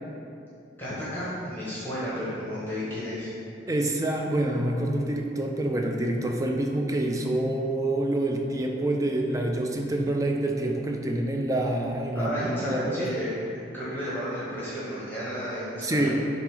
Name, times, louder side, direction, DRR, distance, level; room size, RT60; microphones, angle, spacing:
voice 1, 0.8-3.3 12.1-13.4 13.7-16.2, equal, 10° left, -9 dB, 1.2 m, -32 dB
voice 2, 3.7-13.1 15.8-16.2, right 1 dB, 20° right, 2 dB, 0.4 m, -27 dB
7.1 x 3.0 x 4.8 m, 2.6 s
head